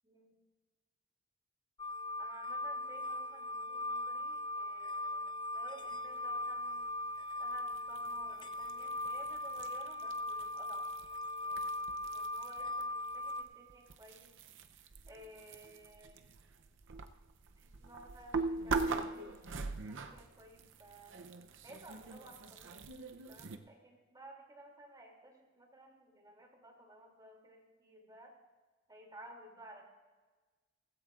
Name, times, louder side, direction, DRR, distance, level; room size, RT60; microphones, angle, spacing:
voice 1, 0.0-0.4 2.2-6.9 7.4-10.9 11.4-14.3 15.1-16.3 17.6-21.2 21.6-23.0 23.3-28.4 28.9-29.9, right 1 dB, 20° right, 0 dB, 2.8 m, -56 dB
sound 1, 1.8-13.4, left 1 dB, 25° left, 0.5 m, -39 dB
sound 2, 7.5-12.8 13.1-23.6, right 4 dB, 65° right, 0.7 m, -42 dB
17.5 x 15.5 x 2.5 m, 1.3 s
head